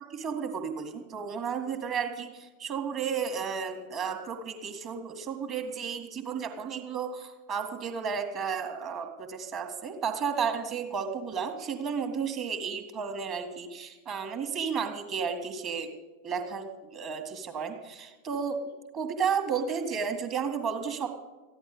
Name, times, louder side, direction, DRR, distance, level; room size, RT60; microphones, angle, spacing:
voice 1, 0.0-16.0 16.2-21.1, right 6 dB, 35° right, 6 dB, 1.9 m, -33 dB
14.5 x 11.0 x 6.8 m, 1.2 s
figure-of-eight pair, 90°, 0 cm